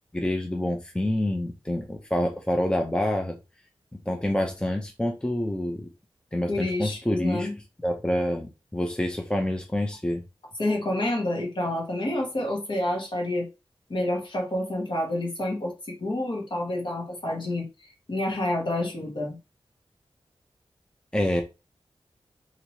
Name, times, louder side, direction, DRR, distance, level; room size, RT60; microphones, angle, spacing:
voice 1, 0.1-3.4 3.9-5.9 6.3-7.5 7.8-10.2 21.1-21.4, left 1 dB, 10° left, 0.6 m, -27 dB
voice 2, 6.5-7.5 10.6-13.5 13.9-15.7 16.0-17.7 18.1-19.4, left 1 dB, 50° left, 1.3 m, -28 dB
2.9 x 2.7 x 2.9 m
cardioid pair, 60°, 10 cm